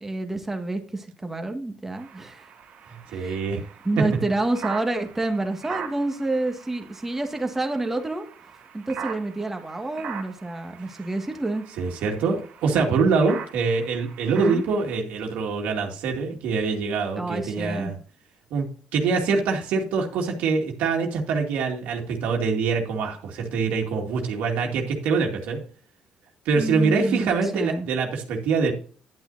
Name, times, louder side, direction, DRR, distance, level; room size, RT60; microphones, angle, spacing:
voice 1, 0.0-2.5 3.1-3.4 3.8-8.2 8.7-11.6 14.4-14.6 17.2-17.9 26.6-27.9, right 2 dB, 10° right, 5 dB, 1.8 m, -28 dB
sound 1, 1.9-15.0, right 7 dB, 60° right, 2.1 m, -41 dB
voice 2, 3.1-3.6 10.9-11.0 11.8-18.0 18.5-18.7 18.9-25.6 26.5-28.7, right 4 dB, 80° right, 1 dB, 2.2 m, -24 dB
11.0 x 8.8 x 2.7 m, 0.42 s
cardioid pair, 125°, 2 cm